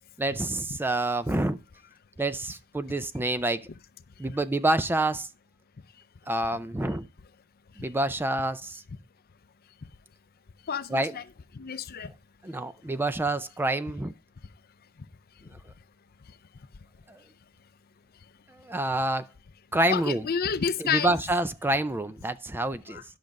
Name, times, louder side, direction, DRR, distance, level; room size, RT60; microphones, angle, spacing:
voice 1, 0.2-1.6 2.2-3.7 4.2-5.3 6.3-7.1 7.8-8.8 10.9-11.1 12.4-14.1 17.1-17.2 18.5-19.3 19.7-20.2 20.8-23.0, right 1 dB, 10° right, 0.4 m, -27 dB
voice 2, 10.7-11.2 11.5-12.1 19.9-21.2 22.9-23.0, left 7 dB, 45° left, 0.5 m, -30 dB
10.5 x 6.0 x 5.1 m
head